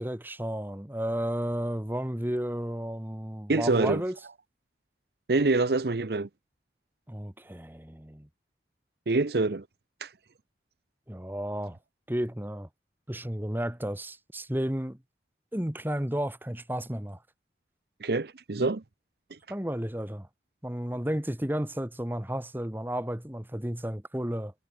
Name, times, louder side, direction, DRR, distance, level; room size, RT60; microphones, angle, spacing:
voice 1, 0.0-4.2 7.1-8.3 11.1-11.8 12.1-12.7 13.1-15.0 15.5-17.2 19.5-20.3 20.6-24.5, equal, 10° right, 1.3 m, -32 dB
voice 2, 3.5-4.0 5.3-6.3 9.1-9.6 10.0-10.1 18.0-18.8, right 3 dB, 65° right, 0.8 m, -25 dB
head